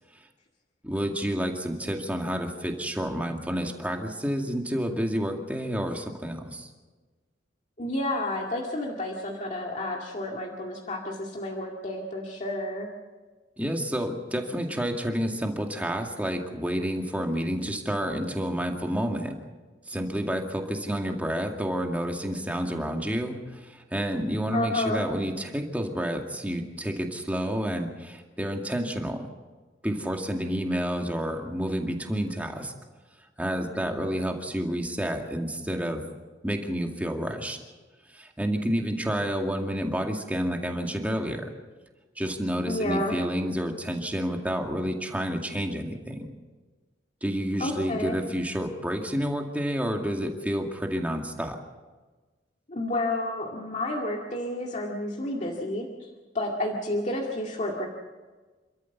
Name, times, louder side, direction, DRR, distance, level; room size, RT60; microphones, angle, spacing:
voice 1, 0.8-6.7 13.6-19.3 19.9-29.2 29.8-32.7 33.4-36.0 36.4-37.6 38.1-41.5 42.2-46.3 47.2-51.6, equal, 10° right, 2 dB, 2.2 m, -29 dB
voice 2, 7.8-12.9 24.5-25.0 42.7-43.1 47.6-48.2 52.7-56.1 56.3-57.9, left 1 dB, 40° left, -1 dB, 2.2 m, -30 dB
28.5 x 13.5 x 7.2 m, 1.3 s
head